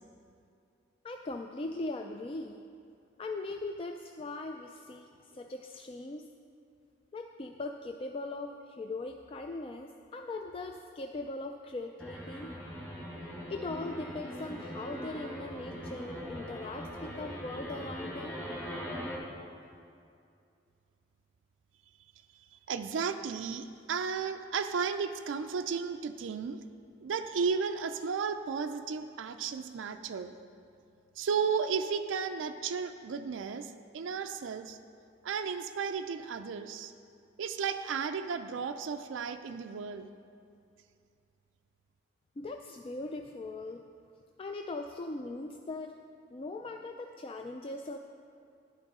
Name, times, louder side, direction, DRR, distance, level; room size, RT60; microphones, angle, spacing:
voice 1, 1.0-2.6 3.2-6.3 7.1-12.6 13.5-18.8 19.3-19.4 42.4-43.8 44.4-46.0 46.3-48.0, left 2 dB, 30° left, 4 dB, 0.3 m, -40 dB
sound 1, 12.0-19.2, equal, 10° left, 1.7 m, -41 dB
voice 2, 22.7-26.6 27.0-30.3 31.2-34.8 35.2-36.9 37.4-40.1, right 6 dB, 85° right, 7 dB, 0.4 m, -34 dB
11.5 x 9.7 x 3.6 m, 2.4 s
head